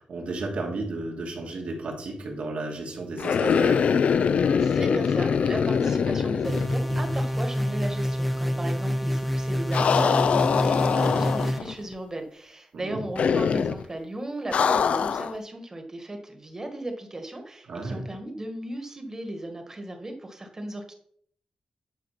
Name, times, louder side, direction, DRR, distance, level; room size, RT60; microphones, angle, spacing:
voice 1, 0.0-3.9 10.9-11.2 12.7-13.0 17.7-18.0, right 2 dB, 80° right, 0 dB, 2.5 m, -33 dB
sound 1, 3.2-7.3 7.6-7.7 9.7-11.7 13.2-13.8 14.5-15.4, left 6 dB, 70° left, 0.4 m, -23 dB
voice 2, 4.5-20.9, right 1 dB, 25° right, 5 dB, 1.6 m, -36 dB
sound 2, 6.4-11.6, equal, ahead, 0.6 m, -27 dB
10.5 x 4.9 x 5.8 m, 0.62 s
wide cardioid pair, 145°, 2 cm